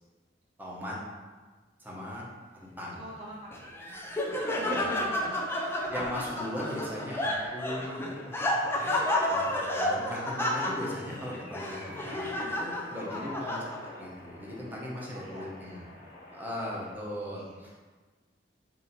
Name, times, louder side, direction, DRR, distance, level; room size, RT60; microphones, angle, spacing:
voice 1, 0.6-0.9 1.8-2.3 2.5-3.0 4.6-5.1 5.9-8.1 9.2-13.6 14.0-15.9 16.3-17.7, left 1 dB, 10° right, -5 dB, 0.9 m, -38 dB
voice 2, 2.9-4.0 4.5-5.7 13.1-13.3 15.1-15.5 17.3-17.5, right 1 dB, 35° right, -5 dB, 0.5 m, -44 dB
Laughter, 3.5-14.0, left 1 dB, 15° left, 0.4 m, -31 dB
sound 1, 6.0-16.9, left 2 dB, 75° left, 1.3 m, -49 dB
4.0 x 2.7 x 4.2 m, 1.4 s
head